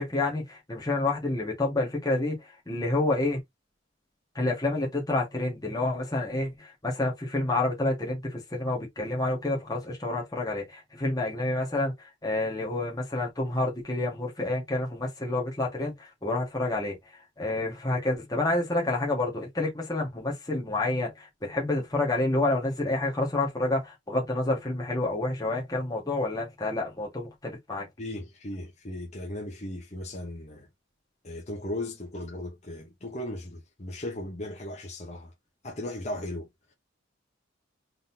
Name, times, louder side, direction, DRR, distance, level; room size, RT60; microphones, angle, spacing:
voice 1, 0.0-3.4 4.3-17.0 17.4-27.9, left 2 dB, 20° left, 1.7 m, -29 dB
voice 2, 28.0-30.7 31.2-35.3 35.6-36.7, left 1 dB, 35° left, 1.1 m, -37 dB
4.0 x 3.8 x 2.7 m
head